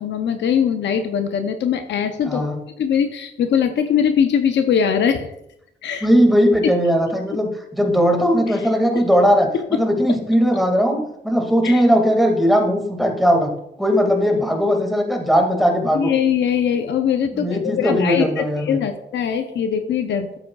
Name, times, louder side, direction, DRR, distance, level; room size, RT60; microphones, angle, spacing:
voice 1, 0.0-2.5 2.8-5.3 5.8-6.1 6.6-6.7 8.5-8.6 9.0-9.1 9.5-9.6 11.6-11.8 15.9-20.4, left 8 dB, 90° left, 7 dB, 0.6 m, -21 dB
voice 2, 2.3-2.6 6.0-13.5 13.8-16.1 17.3-18.8, equal, ahead, 2 dB, 2.0 m, -18 dB
13.0 x 7.7 x 2.3 m, 0.80 s
cardioid pair, 80°, 18 cm